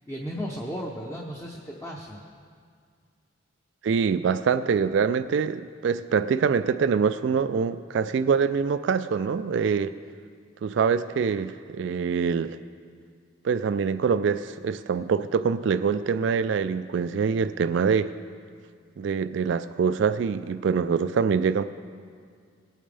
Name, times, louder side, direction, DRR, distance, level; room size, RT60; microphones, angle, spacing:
voice 1, 0.1-2.2, equal, 10° left, -3 dB, 0.7 m, -35 dB
voice 2, 3.8-10.0 10.6-12.6 13.4-18.1 19.0-21.6, right 6 dB, 60° right, 12 dB, 0.3 m, -24 dB
19.0 x 8.8 x 3.3 m, 2.1 s
head